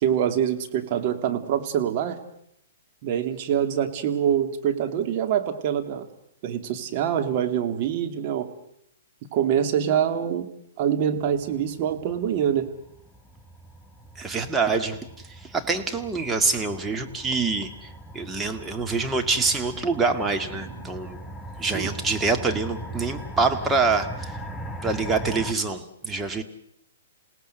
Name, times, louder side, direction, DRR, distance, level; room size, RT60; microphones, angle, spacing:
voice 1, 0.0-2.2 3.0-6.1 6.4-8.5 9.3-10.5 10.8-12.7 20.6-20.8 21.7-21.9, right 9 dB, 45° right, 7 dB, 2.7 m, -25 dB
sound 1, 11.3-25.5, right 1 dB, 5° left, 1.2 m, -39 dB
voice 2, 14.2-15.1 15.4-21.2 21.6-24.4 24.8-26.4, right 4 dB, 10° right, 5 dB, 2.0 m, -25 dB
28.0 x 18.0 x 8.0 m, 0.75 s
hypercardioid pair, 130°, 0 cm